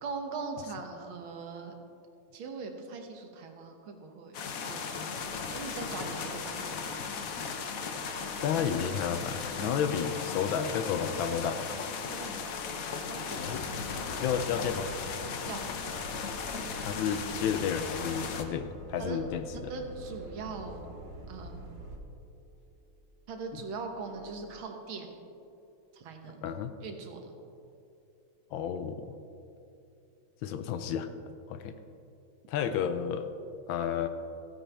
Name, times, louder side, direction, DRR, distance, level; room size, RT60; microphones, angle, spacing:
voice 1, 0.0-1.7 2.3-4.4 4.6-7.0 9.6-9.8 12.1-12.4 13.1-13.5 15.5-15.6 19.0-19.2 19.5-20.9 21.3-21.6 23.3-25.1 25.9-26.5 26.8-27.3, right 4 dB, 75° right, 4 dB, 1.9 m, -41 dB
sound 1, 4.3-18.4, left 5 dB, 60° left, 0.9 m, -37 dB
sound 2, 5.1-24.6, equal, 15° right, 2.9 m, -57 dB
voice 2, 8.4-11.7 13.4-13.7 14.2-14.9 16.8-19.7 23.5-23.6 26.2-26.8 28.5-29.1 30.4-31.1 31.5-31.7 32.5-33.3 33.7-34.1, left 8 dB, 75° left, 9 dB, 1.3 m, -32 dB
sound 3, 13.3-22.0, equal, 45° right, 0.9 m, -46 dB
15.5 x 9.1 x 3.4 m, 2.6 s
omnidirectional pair, 2.3 m